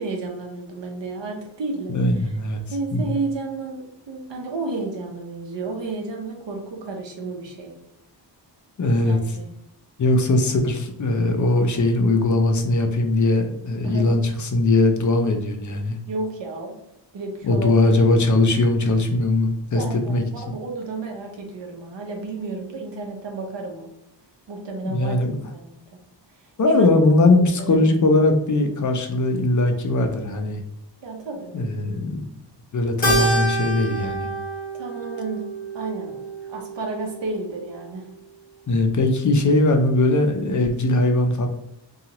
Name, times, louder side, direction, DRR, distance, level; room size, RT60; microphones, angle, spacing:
voice 1, 0.0-1.9 2.7-7.7 9.0-9.5 13.8-14.2 16.1-16.8 17.1-17.7 19.7-23.9 24.5-25.2 25.5-25.7 26.6-26.9 27.3-27.8 31.0-31.5 34.8-35.4 35.7-36.2 36.5-38.1, right 3 dB, 75° right, 1 dB, 0.8 m, -32 dB
voice 2, 1.9-2.6 2.9-3.1 8.8-9.2 10.0-16.0 17.4-20.3 24.8-25.3 26.6-30.6 31.5-32.2 32.7-34.3 38.7-41.5, left 2 dB, 45° left, 5 dB, 0.5 m, -20 dB
Keyboard (musical), 33.0-37.6, right 1 dB, 20° left, 1.0 m, -27 dB
2.8 x 2.4 x 2.8 m, 0.81 s
wide cardioid pair, 125°, 44 cm